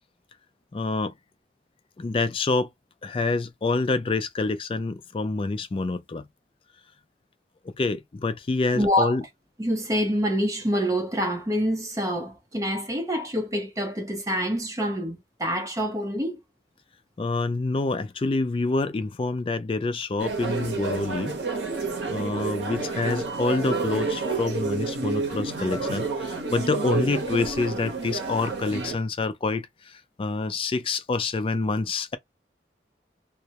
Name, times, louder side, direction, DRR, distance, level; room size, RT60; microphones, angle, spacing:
voice 1, 0.7-1.1 2.0-2.7 3.0-6.2 7.6-9.2 17.2-21.4 22.1-32.2, left 3 dB, 30° left, 0.3 m, -27 dB
voice 2, 8.7-9.2 9.6-16.4, equal, 20° right, 0.6 m, -26 dB
sound 1, 20.2-29.0, right 4 dB, 80° right, 0.7 m, -29 dB
2.2 x 2.0 x 2.8 m
head